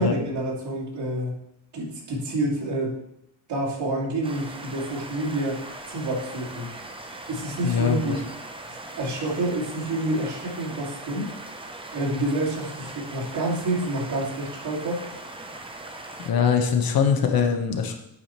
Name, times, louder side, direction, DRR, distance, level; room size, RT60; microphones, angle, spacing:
voice 1, 0.0-1.4 1.7-3.0 3.5-6.7 7.3-8.2 8.7-11.3 11.9-15.1, right 1 dB, 60° right, -5 dB, 2.9 m, -28 dB
sound 1, 4.2-16.3, right 2 dB, 10° right, 0.7 m, -40 dB
voice 2, 7.6-8.1 16.2-17.9, left 6 dB, 50° left, 4 dB, 1.2 m, -22 dB
8.7 x 5.0 x 4.5 m, 0.78 s
cardioid pair, 125°, 45 cm